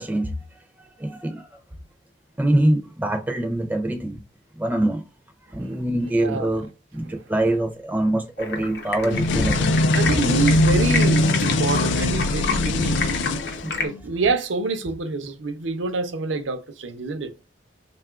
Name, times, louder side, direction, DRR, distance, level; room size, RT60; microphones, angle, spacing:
voice 1, 0.0-1.6 2.4-4.2 4.5-5.1 5.5-9.8 13.6-13.8, right 1 dB, 10° right, 0.4 m, -24 dB
voice 2, 6.1-6.6 7.0-7.1 9.9-13.0 13.8-17.3, right 3 dB, 80° right, 0.5 m, -27 dB
Stream, 8.4-13.9, left 4 dB, 60° left, 0.7 m, -30 dB
sound 1, 9.1-14.0, left 2 dB, 75° left, 0.4 m, -21 dB
3.6 x 2.3 x 2.3 m
head